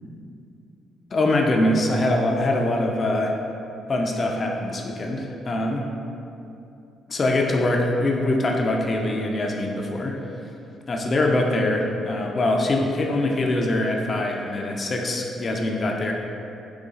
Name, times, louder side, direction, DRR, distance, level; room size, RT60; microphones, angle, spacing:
voice 1, 1.1-3.3 3.9-5.9 7.1-10.2 10.9-16.1, left 1 dB, 40° left, 1 dB, 0.4 m, -23 dB
3.9 x 3.1 x 3.8 m, 2.8 s
cardioid pair, 90°, 0 cm